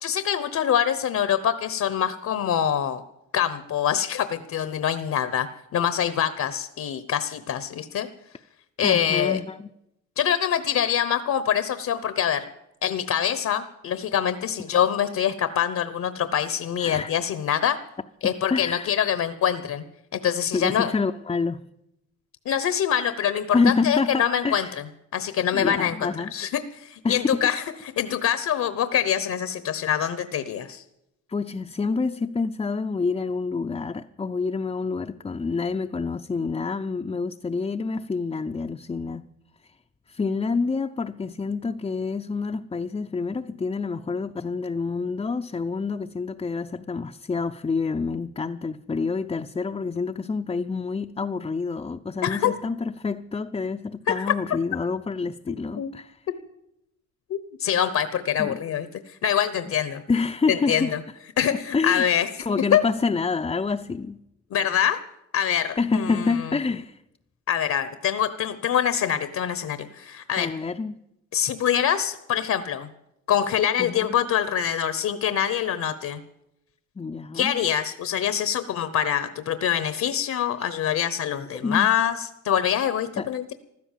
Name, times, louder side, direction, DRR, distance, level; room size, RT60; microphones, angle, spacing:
voice 1, 0.0-3.0 3.3-5.5 5.7-8.1 8.8-9.4 10.2-12.5 12.8-17.8 18.2-19.8 20.1-20.9 22.5-24.7 25.1-27.6 28.0-30.8 52.2-52.5 54.1-54.3 55.5-55.9 57.3-60.0 60.5-61.0 61.4-62.3 62.7-62.8 64.5-65.0 65.3-66.5 67.5-70.5 71.3-72.9 73.3-76.2 77.3-83.5, left 9 dB, 65° left, 1.0 m, -25 dB
voice 2, 8.8-9.7 16.8-17.1 18.5-18.9 20.5-21.7 23.5-24.8 25.5-26.3 27.0-27.5 31.3-39.2 40.1-56.2 58.4-58.6 60.1-60.9 61.5-62.1 62.4-64.2 65.8-67.0 70.4-71.0 73.8-74.2 77.0-77.5 81.6-81.9 83.2-83.3, left 4 dB, 20° left, 0.5 m, -27 dB
15.5 x 12.0 x 7.4 m
cardioid pair, 90°, 30 cm